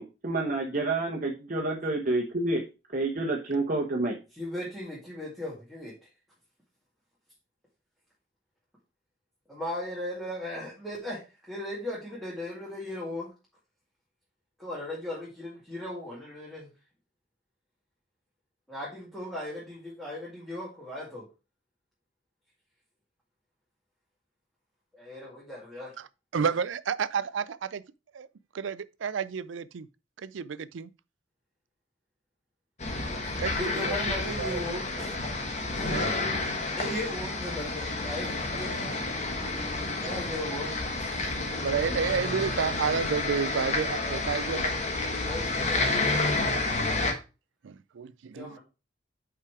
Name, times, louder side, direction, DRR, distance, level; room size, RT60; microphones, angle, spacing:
voice 1, 0.0-2.6 2.9-4.1, right 2 dB, 45° right, 1.0 m, -28 dB
voice 2, 4.4-5.9 9.5-13.3 14.6-16.7 18.7-21.3 24.9-25.9 33.6-35.2 35.7-35.9 36.8-38.9 40.0-41.7 45.3-46.3 48.3-48.6, left 1 dB, ahead, 2.1 m, -37 dB
voice 3, 26.3-27.8 28.1-28.3 28.5-29.9 30.2-30.9 33.4-34.8 35.9-36.1 41.6-44.7 46.2-47.1 47.6-48.6, right 6 dB, 90° right, 0.4 m, -31 dB
sound 1, 32.8-47.1, left 2 dB, 40° left, 1.2 m, -30 dB
5.6 x 4.9 x 4.7 m
head